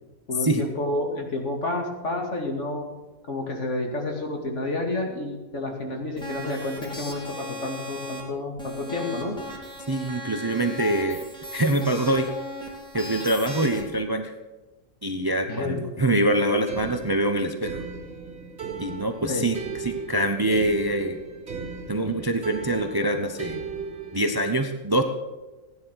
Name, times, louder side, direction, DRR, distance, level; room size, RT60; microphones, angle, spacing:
voice 1, 0.3-2.8 3.3-9.3 15.5-15.9 19.3-19.5, left 2 dB, 60° left, 1 dB, 2.7 m, -30 dB
sound 1, 6.2-8.2 8.6-13.9, left 1 dB, 5° left, 2.6 m, -37 dB
voice 2, 9.9-11.2 11.5-12.3 12.9-14.3 15.0-17.8 18.8-21.2 21.9-23.6 24.1-25.0, right 1 dB, 20° right, 6 dB, 0.8 m, -24 dB
sound 2, 16.7-24.3, right 5 dB, 55° right, 3.4 m, -37 dB
16.0 x 10.5 x 6.4 m, 1.2 s
omnidirectional pair, 1.4 m